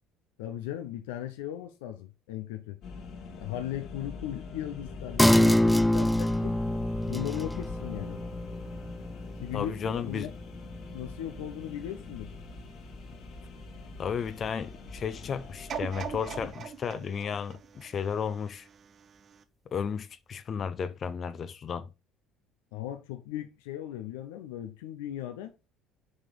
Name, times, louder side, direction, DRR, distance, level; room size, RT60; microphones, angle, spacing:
voice 1, 0.4-2.8 3.4-6.6 7.1-8.2 9.4-10.4 10.9-12.3 22.7-25.5, left 12 dB, 80° left, 0.8 m, -37 dB
sound 1, 2.8-16.5, left 4 dB, 65° left, 2.2 m, -43 dB
sound 2, 5.2-12.2 12.6-12.7, left 1 dB, 5° left, 0.4 m, -27 dB
voice 2, 9.5-10.3 14.0-18.7 19.7-21.9, left 7 dB, 45° left, 0.6 m, -33 dB
sound 3, 15.7-18.8 19.3-19.4, right 7 dB, 50° right, 1.3 m, -40 dB
6.3 x 5.0 x 5.2 m
hypercardioid pair, 70°, 0 cm